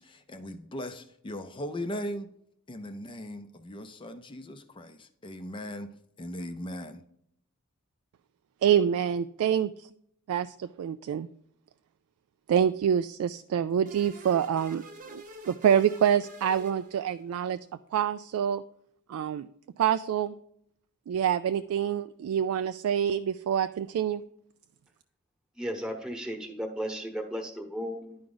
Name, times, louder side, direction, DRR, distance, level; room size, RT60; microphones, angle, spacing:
voice 1, 0.0-2.3 2.7-5.9 6.2-7.0, left 1 dB, 25° left, 8 dB, 0.5 m, -38 dB
voice 2, 8.6-9.9 10.3-11.3 12.5-14.8 15.1-17.6 17.9-18.6 19.1-19.5 19.8-20.3 21.1-24.2, right 9 dB, 80° right, 12 dB, 0.3 m, -26 dB
sound 1, 13.9-17.4, right 2 dB, 40° right, 0.9 m, -47 dB
voice 3, 25.6-28.2, equal, 5° right, 3 dB, 1.1 m, -35 dB
11.0 x 4.8 x 3.9 m, 0.71 s
head